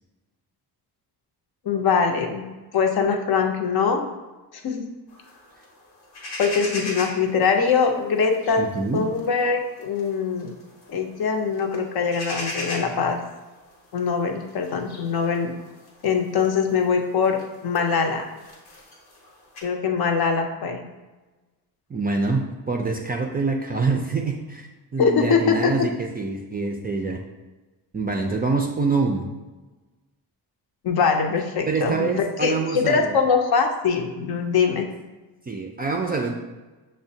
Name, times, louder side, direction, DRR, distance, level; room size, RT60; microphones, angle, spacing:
voice 1, 1.6-2.5 2.7-4.0 4.6-4.8 6.4-8.6 8.9-10.5 10.9-13.2 13.9-15.5 16.0-18.2 19.6-20.8 25.0-25.9 30.8-32.1 32.4-34.9, left 5 dB, 60° left, 4 dB, 0.6 m, -22 dB
sound 1, 5.1-19.6, left 2 dB, 85° left, 1.1 m, -40 dB
voice 2, 8.6-9.1 21.9-27.2 27.9-29.3 31.7-33.2 35.5-36.4, right 4 dB, 25° right, 1 dB, 0.3 m, -25 dB
6.0 x 2.1 x 2.7 m, 1.2 s
cardioid pair, 90°, 42 cm